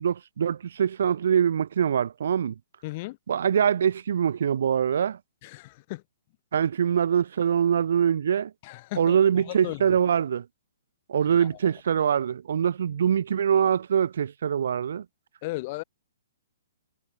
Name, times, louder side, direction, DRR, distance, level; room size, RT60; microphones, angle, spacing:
voice 1, 0.0-2.5 3.3-5.2 6.5-8.5 8.9-10.4 11.1-15.0, right 8 dB, 60° right, 1.8 m, -23 dB
voice 2, 2.8-3.2 5.4-6.0 8.6-9.2 9.5-10.0 11.3-11.5 15.4-15.8, left 21 dB, 40° left, 4.5 m, -35 dB
figure-of-eight pair, 125°, 0 cm